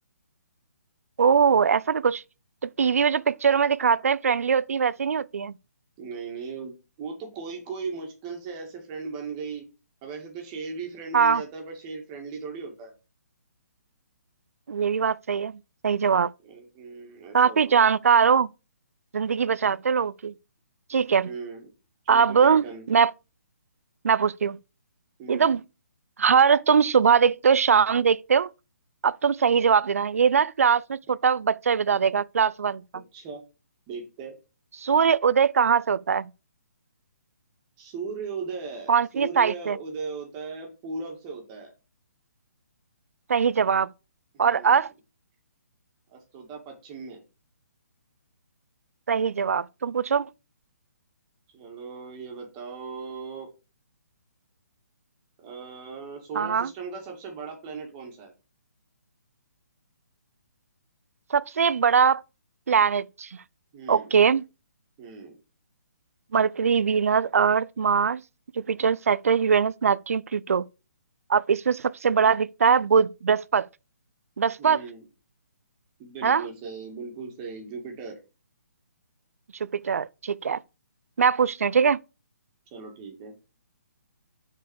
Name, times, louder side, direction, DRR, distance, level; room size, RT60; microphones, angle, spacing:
voice 1, 1.2-2.2 2.8-5.5 11.1-11.4 14.7-15.6 15.8-16.3 17.3-18.5 19.1-20.3 20.9-21.3 22.1-23.1 24.0-24.6 25.3-25.6 26.2-28.5 29.0-32.8 34.8-36.3 38.9-39.8 43.3-43.9 44.4-44.9 49.1-50.3 56.3-56.7 61.3-62.2 62.7-63.3 63.9-64.4 66.3-68.2 68.6-70.6 71.3-73.7 74.4-74.8 76.2-76.5 79.6-80.6 81.2-82.0, right 6 dB, 60° right, 0.4 m, -21 dB
voice 2, 6.0-9.7 10.0-12.9 16.4-17.8 21.2-21.7 22.0-22.9 25.2-25.5 33.1-33.4 33.9-34.4 37.8-41.7 44.3-44.8 46.1-47.2 51.5-53.5 55.4-58.3 63.7-64.1 65.0-65.4 74.6-75.0 76.0-78.2 82.7-83.3, right 4 dB, 25° right, 2.3 m, -37 dB
6.6 x 4.7 x 6.5 m
figure-of-eight pair, 135°, 9 cm